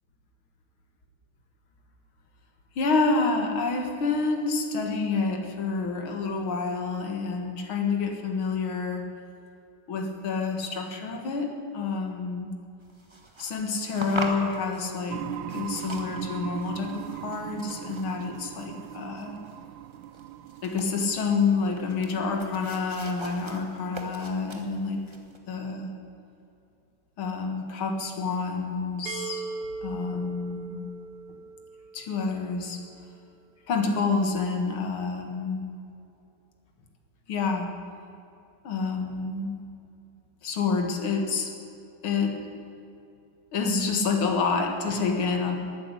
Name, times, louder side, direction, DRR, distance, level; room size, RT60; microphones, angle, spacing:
voice 1, 2.8-9.1 9.9-12.5 13.4-19.4 20.6-25.0 25.5-25.9 27.2-29.4 29.8-30.8 31.9-32.8 33.7-35.6 37.3-37.7 38.6-39.5 40.4-41.5 42.0-42.4 43.5-45.6, left 4 dB, 80° left, 3 dB, 2.5 m, -28 dB
sound 1, 12.8-25.4, right 1 dB, 15° right, 1.2 m, -42 dB
sound 2, 15.1-24.7, right 13 dB, 75° right, 1.3 m, -40 dB
sound 3, 29.1-32.8, right 4 dB, 50° right, 1.8 m, -39 dB
13.5 x 9.5 x 9.8 m, 2.6 s
omnidirectional pair, 2.2 m